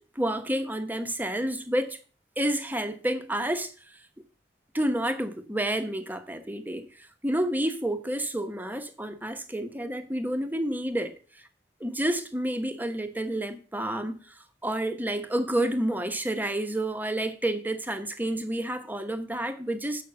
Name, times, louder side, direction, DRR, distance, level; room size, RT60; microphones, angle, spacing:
voice 1, 0.0-2.0 2.4-3.7 4.7-11.1 11.8-20.0, right 1 dB, 10° right, 1.1 m, -29 dB
8.3 x 5.9 x 6.9 m
head